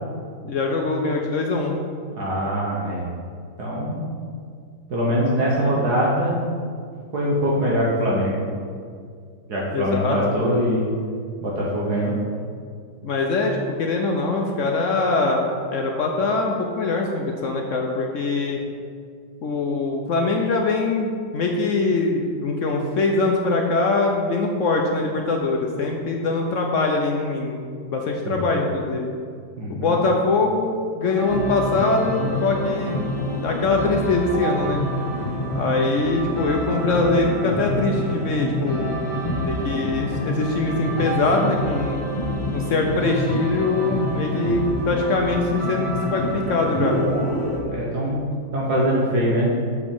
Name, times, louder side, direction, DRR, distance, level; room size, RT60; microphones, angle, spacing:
voice 1, 0.5-1.8 9.7-10.2 13.0-18.6 19.4-27.6 27.9-29.1 29.7-33.0 33.4-34.8 35.5-38.9 39.4-42.0 42.5-47.0, left 3 dB, 70° left, 1 dB, 0.7 m, -23 dB
voice 2, 2.2-3.1 3.6-4.0 4.9-6.3 7.1-8.4 9.5-10.9 11.4-12.1 28.2-28.4 29.6-30.0 47.7-48.2 48.5-49.6, equal, 60° right, -5 dB, 1.6 m, -22 dB
sound 1, 31.0-47.6, equal, 15° left, 1.9 m, -27 dB
6.8 x 5.0 x 5.4 m, 2.2 s
omnidirectional pair, 2.0 m